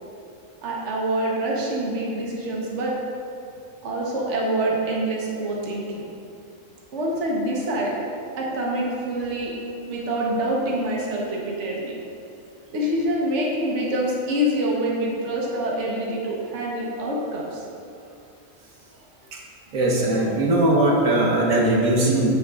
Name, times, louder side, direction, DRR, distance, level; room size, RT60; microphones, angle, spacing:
voice 1, 0.6-2.9 3.8-6.1 6.9-7.9 8.4-9.5 9.9-11.9 12.7-17.6, right 1 dB, 60° right, -3 dB, 1.4 m, -26 dB
voice 2, 19.7-22.3, right 1 dB, 85° right, -2 dB, 1.7 m, -20 dB
9.6 x 8.5 x 2.4 m, 2.5 s
omnidirectional pair, 1.4 m